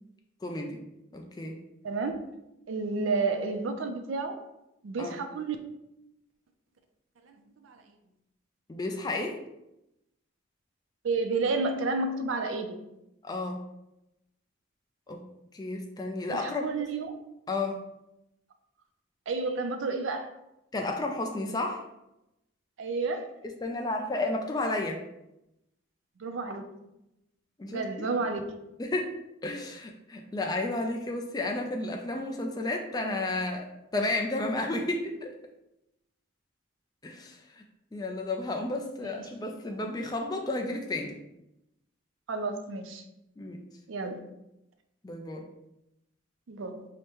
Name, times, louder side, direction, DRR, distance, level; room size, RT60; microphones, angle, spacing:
voice 1, 0.4-0.8 1.1-1.6 5.0-5.2 8.7-9.4 13.2-13.6 15.1-15.2 15.5-16.6 17.5-17.8 20.7-21.8 23.4-25.0 27.6-28.1 28.8-29.1 29.4-35.3 37.0-37.6 37.9-41.1 43.4-43.6 45.0-45.4, left 2 dB, 20° left, 2 dB, 0.3 m, -32 dB
voice 2, 1.8-2.2 2.7-4.4 4.8-5.6 7.3-7.4 7.6-7.8 11.0-12.8 16.3-17.2 19.3-20.3 22.8-23.3 26.2-26.7 27.7-28.6 39.1-39.2 42.3-43.0 43.9-44.2 46.5-46.9, right 3 dB, 75° right, 6 dB, 0.4 m, -31 dB
4.8 x 2.1 x 2.9 m, 0.88 s
head